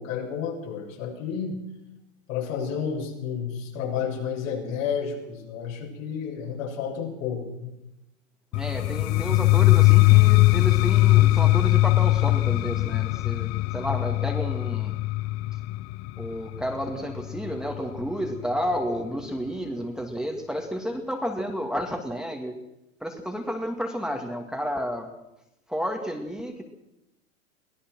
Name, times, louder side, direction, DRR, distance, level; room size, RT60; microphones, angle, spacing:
voice 1, 0.0-1.6 2.3-7.7, left 7 dB, 65° left, 1 dB, 7.3 m, -31 dB
sound 1, 8.5-18.3, left 19 dB, 40° left, 0.7 m, -21 dB
voice 2, 8.5-15.0 16.2-22.6 23.0-25.1 25.7-26.6, equal, ahead, 2 dB, 2.3 m, -31 dB
23.5 x 17.5 x 6.3 m, 0.90 s
hypercardioid pair, 105°, 42 cm